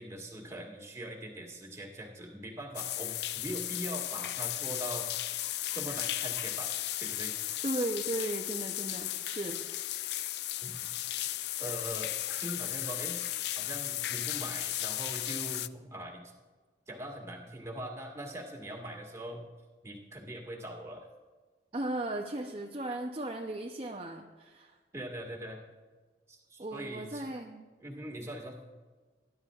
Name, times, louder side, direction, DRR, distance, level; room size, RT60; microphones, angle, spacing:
voice 1, 0.0-5.4 5.8-6.7 7.0-7.4 10.6-10.8 11.6-12.1 12.4-13.2 13.6-16.3 16.9-19.4 19.8-21.1 24.9-25.6 26.3-27.3 27.8-28.6, right 1 dB, 15° right, -2 dB, 1.8 m, -42 dB
sound 1, 2.7-15.7, left 14 dB, 65° left, 0.3 m, -35 dB
voice 2, 7.6-9.6 21.7-24.8 26.6-27.6, right 1 dB, 30° right, 1 dB, 0.7 m, -36 dB
20.0 x 11.0 x 2.4 m, 1.4 s
head